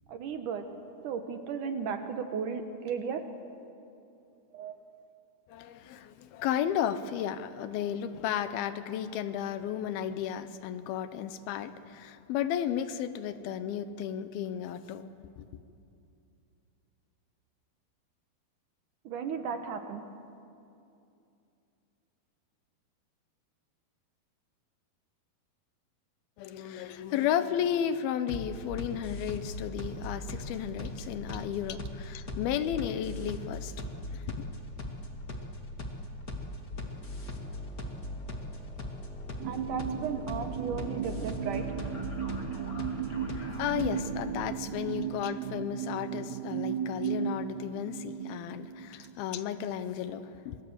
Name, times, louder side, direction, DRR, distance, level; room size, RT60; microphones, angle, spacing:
voice 1, 0.1-0.6 1.0-3.2 4.5-4.8 19.0-20.0 39.4-41.6, right 6 dB, 65° right, 7 dB, 2.4 m, -35 dB
voice 2, 5.5-15.1 26.4-33.7 34.1-34.5 43.3-50.6, left 9 dB, 75° left, 12 dB, 2.6 m, -33 dB
sound 1, 28.3-44.2, left 1 dB, 30° left, 2.0 m, -39 dB
sound 2, 39.4-49.2, right 9 dB, 90° right, 2.8 m, -36 dB
26.0 x 22.5 x 8.0 m, 2.7 s
omnidirectional pair, 4.5 m